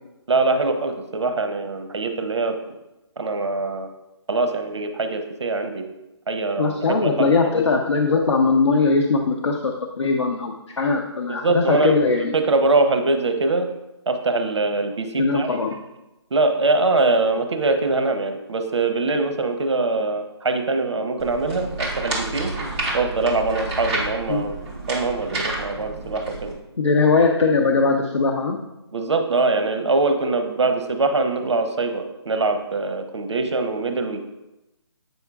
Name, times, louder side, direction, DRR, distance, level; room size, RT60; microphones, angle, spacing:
voice 1, 0.3-2.6 3.2-3.9 4.3-5.9 6.3-7.3 11.3-12.0 12.3-13.7 14.1-15.6 16.3-22.5 22.9-24.6 24.9-26.5 28.9-34.2, right 3 dB, 75° right, 6 dB, 0.7 m, -23 dB
voice 2, 6.6-12.3 15.2-15.7 24.3-24.5 26.8-28.6, left 4 dB, 85° left, 1 dB, 0.7 m, -20 dB
sound 1, 21.2-26.5, right 2 dB, 10° right, 0.8 m, -29 dB
7.9 x 5.5 x 2.3 m, 0.97 s
hypercardioid pair, 170°, 15 cm